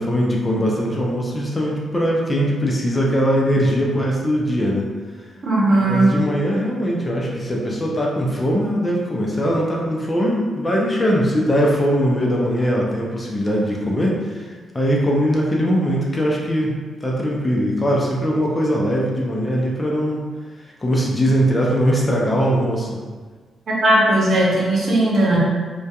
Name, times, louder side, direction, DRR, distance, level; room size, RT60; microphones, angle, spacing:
voice 1, 0.0-4.9 5.8-16.7 17.0-20.2 20.6-23.0, equal, 25° left, -3 dB, 0.5 m, -21 dB
voice 2, 5.4-6.2 23.8-25.4, right 1 dB, 60° right, -5 dB, 0.8 m, -17 dB
2.6 x 2.3 x 2.3 m, 1.5 s
supercardioid pair, 55°, 0 cm